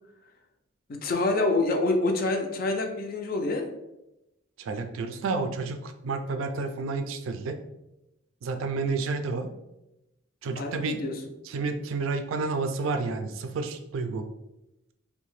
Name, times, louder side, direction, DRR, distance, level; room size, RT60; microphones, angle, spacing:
voice 1, 0.9-3.7 10.6-11.2, left 2 dB, 45° left, 4 dB, 0.4 m, -26 dB
voice 2, 4.6-7.6 8.4-9.5 10.4-11.0 11.4-14.2, right 4 dB, 80° right, 7 dB, 0.3 m, -30 dB
2.7 x 2.1 x 3.0 m, 0.91 s
head